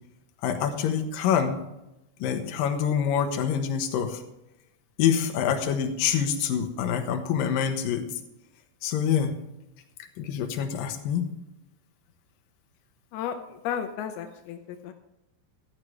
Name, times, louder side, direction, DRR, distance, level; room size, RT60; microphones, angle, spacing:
voice 1, 0.4-1.6 2.2-4.2 5.0-8.0 8.8-9.4 10.2-11.3, left 8 dB, 70° left, 4 dB, 2.2 m, -26 dB
voice 2, 13.1-14.9, left 8 dB, 85° left, 6 dB, 2.2 m, -33 dB
15.0 x 12.0 x 3.2 m, 0.92 s
omnidirectional pair, 5.5 m